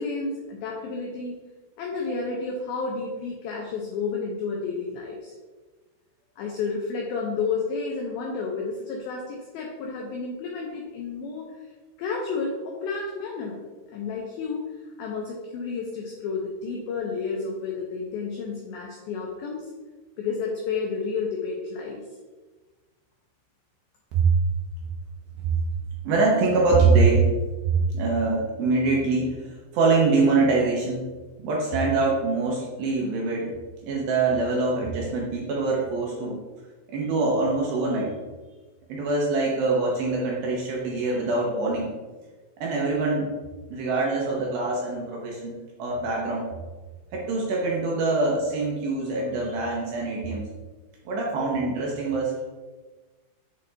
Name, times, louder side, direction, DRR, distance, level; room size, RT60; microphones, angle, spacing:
voice 1, 0.0-1.4 1.8-5.3 6.4-11.5 12.0-13.6 13.9-14.6 15.0-19.7 20.2-22.0, left 4 dB, 90° left, -1 dB, 2.1 m, -31 dB
voice 2, 26.0-27.3 27.6-31.1 31.4-33.5 33.8-36.4 36.9-38.1 38.9-41.9 42.6-43.3 43.7-46.5 47.1-50.5 51.1-52.4, right 3 dB, 80° right, -3 dB, 2.1 m, -24 dB
8.1 x 3.3 x 3.9 m, 1.3 s
omnidirectional pair, 5.3 m